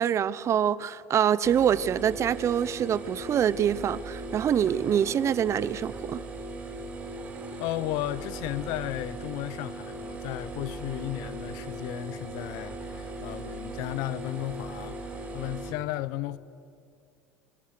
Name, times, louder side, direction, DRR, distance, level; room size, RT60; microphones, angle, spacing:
voice 1, 0.0-6.2, right 9 dB, 35° right, 0.8 m, -25 dB
sound 1, 1.4-15.7, right 2 dB, 20° right, 7.3 m, -39 dB
voice 2, 7.6-15.0 15.3-16.4, left 15 dB, 65° left, 0.9 m, -34 dB
25.5 x 21.5 x 6.6 m
hypercardioid pair, 95°, 8 cm